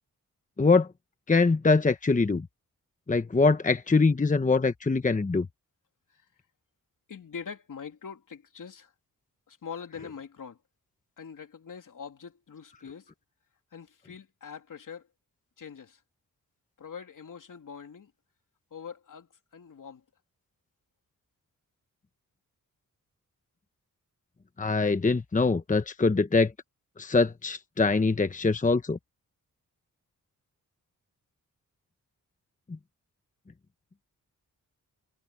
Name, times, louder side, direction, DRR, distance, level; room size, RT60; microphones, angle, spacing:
voice 1, 0.6-0.9 1.3-2.5 3.1-5.5 24.6-26.5 27.0-29.0, left 3 dB, 25° left, 1.1 m, -23 dB
voice 2, 7.1-8.9 9.5-10.6 11.2-13.0 13.7-15.0 15.6-16.0 16.8-18.1 18.7-19.3 19.5-20.0, left 6 dB, 65° left, 3.3 m, -43 dB
cardioid pair, 75°, 33 cm